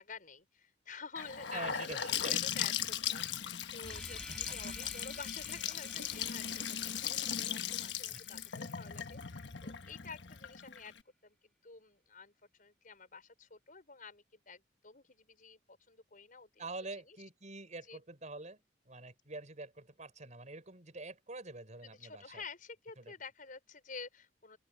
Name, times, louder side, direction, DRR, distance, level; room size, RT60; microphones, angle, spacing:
voice 1, 0.0-1.9 2.2-10.9 11.2-12.3 12.6-16.6 17.1-17.2 17.9-18.0 21.8-24.6, left 5 dB, 50° left, 5.1 m, -50 dB
Gurgling / Sink (filling or washing) / Bathtub (filling or washing), 1.2-11.0, left 9 dB, 75° left, 1.3 m, -38 dB
voice 2, 1.5-2.4 4.3-4.9 5.4-5.6 8.1-8.2 16.6-22.4 23.0-23.1, right 2 dB, 40° right, 5.9 m, -46 dB
sound 1, 3.8-8.8, equal, 5° left, 3.4 m, -52 dB
open air
head